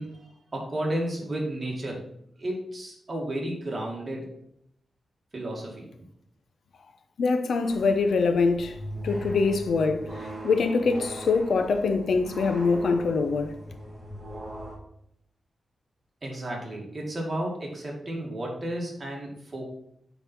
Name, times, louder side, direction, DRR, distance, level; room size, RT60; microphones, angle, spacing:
voice 1, 0.0-2.0 2.4-4.3 5.3-5.9 16.2-19.6, right 1 dB, 25° right, 2.1 m, -32 dB
voice 2, 7.2-8.8 9.0-10.1 10.4-13.5, left 4 dB, 70° left, 0.7 m, -24 dB
sound 1, 7.7-14.8, equal, 10° right, 2.0 m, -39 dB
9.1 x 4.1 x 4.4 m
wide cardioid pair, 160°, 0 cm